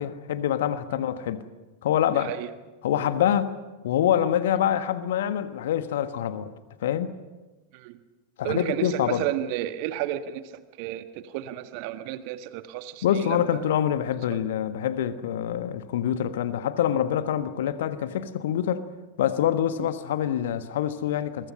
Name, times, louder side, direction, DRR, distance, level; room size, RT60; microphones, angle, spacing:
voice 1, 0.0-1.4 1.8-2.3 2.8-3.6 3.8-6.5 6.8-7.1 8.4-9.2 13.0-18.8 19.2-21.5, left 10 dB, 55° left, 1.4 m, -25 dB
voice 2, 2.1-2.5 7.7-8.0 8.4-13.6 14.3-14.4 19.8-19.9, right 12 dB, 45° right, 1.5 m, -32 dB
29.5 x 23.0 x 5.5 m
figure-of-eight pair, 90°, 0 cm